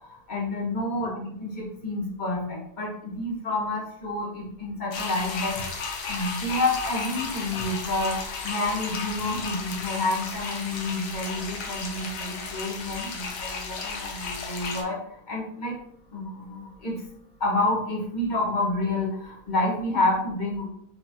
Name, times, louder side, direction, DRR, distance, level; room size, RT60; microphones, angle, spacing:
voice 1, 0.3-5.6 6.1-15.0 15.3-15.8 16.1-17.0 17.4-20.7, left 2 dB, 30° left, -3 dB, 1.1 m, -29 dB
sound 1, 4.9-14.8, left 4 dB, 65° left, 1.2 m, -34 dB
4.3 x 4.0 x 2.9 m, 0.68 s
omnidirectional pair, 2.0 m